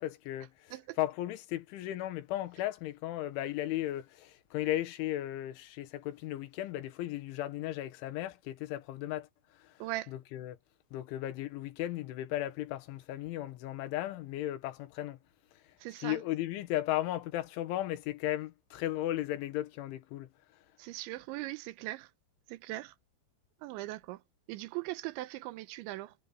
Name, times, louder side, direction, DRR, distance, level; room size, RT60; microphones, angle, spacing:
voice 1, 0.0-9.8 10.1-10.6 10.9-15.2 15.5-15.6 16.0-20.3, left 14 dB, 90° left, 3.7 m, -36 dB
voice 2, 9.8-10.1 15.8-16.2 20.8-22.1 22.5-22.9 23.6-24.2 24.5-26.1, right 18 dB, 85° right, 3.1 m, -40 dB
omnidirectional pair, 5.3 m